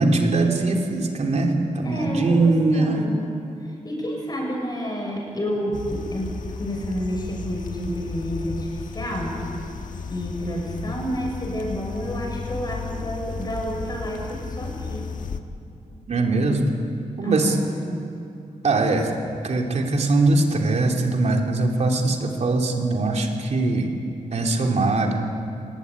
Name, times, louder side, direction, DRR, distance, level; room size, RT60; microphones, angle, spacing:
voice 1, 0.0-3.0 16.1-16.6 17.2-17.6 18.6-19.1 19.4-23.9 24.3-25.2, right 2 dB, 55° right, 1 dB, 3.2 m, -21 dB
voice 2, 1.8-3.4 3.8-9.4 10.1-15.0 17.2-17.9, equal, 30° left, 1 dB, 6.5 m, -29 dB
sound 1, 5.7-15.4, left 5 dB, 80° left, 1.5 m, -34 dB
24.0 x 21.5 x 9.7 m, 2.7 s
wide cardioid pair, 145°, 13 cm